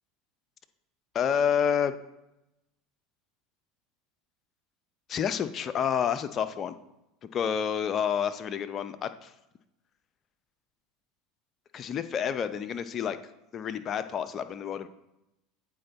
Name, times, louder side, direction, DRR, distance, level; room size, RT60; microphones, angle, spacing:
voice 1, 1.1-1.9 5.1-6.8 7.3-9.3 11.7-13.2 13.5-14.9, left 8 dB, 40° left, 11 dB, 0.5 m, -29 dB
8.7 x 4.3 x 4.0 m, 0.89 s
hypercardioid pair, 80°, 0 cm